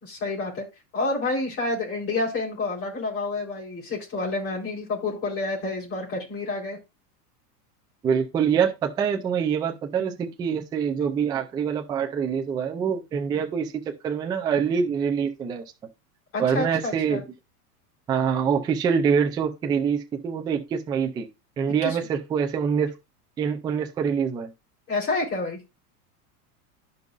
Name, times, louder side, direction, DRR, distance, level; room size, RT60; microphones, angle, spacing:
voice 1, 0.0-0.7 0.9-6.8 16.3-17.2 21.8-22.0 24.9-25.6, left 3 dB, 30° left, 3.8 m, -29 dB
voice 2, 8.0-15.6 16.4-17.2 18.1-21.3 21.6-22.9 23.4-24.5, right 7 dB, 10° right, 0.3 m, -25 dB
11.5 x 5.4 x 2.4 m
supercardioid pair, 150°, 46 cm